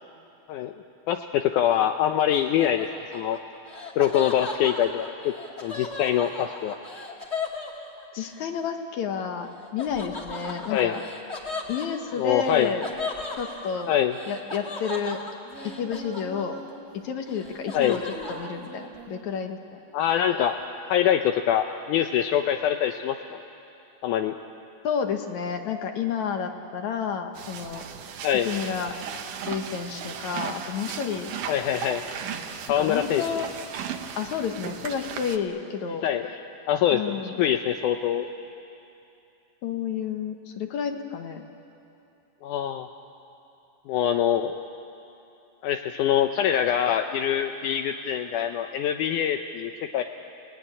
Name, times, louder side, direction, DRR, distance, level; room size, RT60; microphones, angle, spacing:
voice 1, 1.1-3.4 4.0-5.3 5.6-6.8 10.7-10.9 12.2-12.7 13.9-14.1 17.7-18.0 19.9-20.6 20.9-23.4 24.0-24.3 28.2-28.5 31.5-32.0 32.7-33.4 36.0-36.4 36.7-38.3 42.4-42.9 43.9-44.5 45.6-50.0, left 10 dB, 80° left, 6 dB, 1.8 m, -24 dB
Laughter, 2.3-8.4 9.8-16.8 17.1-18.5, left 3 dB, 25° left, 1.6 m, -37 dB
voice 2, 8.1-11.0 11.7-12.9 13.4-14.0 14.3-15.2 15.6-16.6 16.9-18.0 18.3-19.8 24.8-27.8 28.5-28.9 29.5-31.3 32.8-33.5 34.2-36.1 36.9-37.4 39.6-41.5, left 7 dB, 65° left, 5 dB, 2.1 m, -30 dB
Singing, 15.4-16.8 17.3-19.3 20.1-20.7, right 2 dB, 80° right, 4.7 m, -43 dB
sound 1, 27.4-35.4, right 8 dB, 65° right, 2.5 m, -36 dB
28.5 x 18.5 x 9.9 m, 2.8 s
omnidirectional pair, 4.4 m